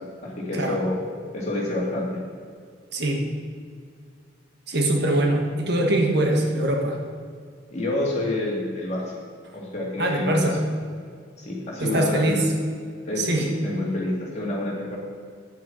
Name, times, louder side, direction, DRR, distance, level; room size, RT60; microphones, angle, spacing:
voice 1, 0.2-1.0 1.3-2.2 7.7-9.0 9.5-10.6 11.4-12.4 13.0-15.0, left 1 dB, 35° left, -3 dB, 2.3 m, -28 dB
voice 2, 2.9-3.3 4.7-7.0 10.0-10.6 11.8-12.5 13.2-13.5, right 1 dB, 55° right, 2 dB, 1.3 m, -23 dB
9.2 x 7.6 x 5.7 m, 2.1 s
head